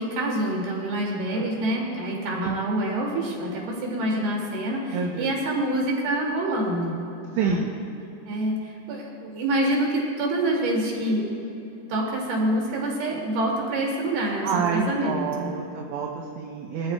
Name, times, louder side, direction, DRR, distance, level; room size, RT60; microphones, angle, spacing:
voice 1, 0.0-7.0 7.3-7.7 8.3-11.3 11.9-15.6, right 1 dB, 60° right, -2 dB, 3.9 m, -26 dB
voice 2, 4.9-5.3 7.4-7.8 14.4-16.9, right 5 dB, 75° right, -1 dB, 2.8 m, -28 dB
22.5 x 13.5 x 2.2 m, 2.9 s
omnidirectional pair, 5.5 m